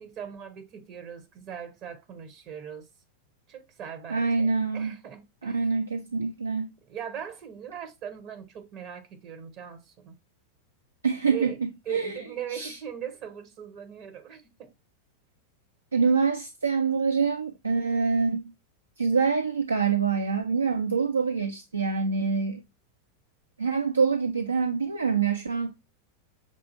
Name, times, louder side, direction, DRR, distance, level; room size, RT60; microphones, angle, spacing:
voice 1, 0.0-2.9 3.5-5.7 6.9-10.1 11.3-11.6 11.9-14.7, right 8 dB, 40° right, 0.7 m, -40 dB
voice 2, 4.1-4.9 5.4-6.7 11.0-12.3 12.5-12.8 15.9-18.5 19.0-22.6 23.6-25.7, right 5 dB, 80° right, 0.4 m, -26 dB
6.0 x 2.4 x 2.7 m
figure-of-eight pair, 90°, 0 cm